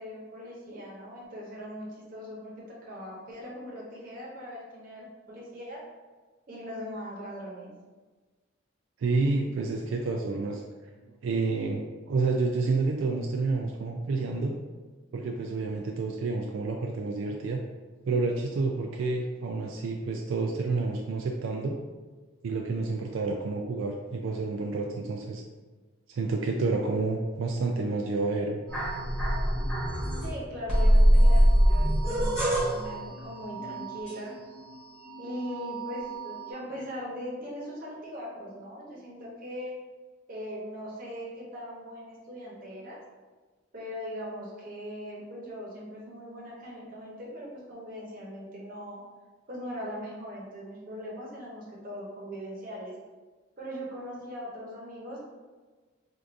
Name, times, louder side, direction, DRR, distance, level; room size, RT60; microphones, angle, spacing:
voice 1, 0.0-5.8 6.5-7.7 30.2-34.3 35.2-39.7 40.3-43.0 43.7-49.0 49.5-52.9 53.6-55.2, equal, 45° right, -4 dB, 0.9 m, -40 dB
voice 2, 9.0-10.6 11.2-14.6 15.1-17.6 18.1-21.8 22.4-25.4 26.1-28.6, right 3 dB, 80° right, 1 dB, 0.3 m, -29 dB
sound 1, 28.7-30.3 30.7-34.7 35.0-36.5, equal, 5° left, 1.2 m, -24 dB
4.5 x 2.5 x 2.5 m, 1.3 s
head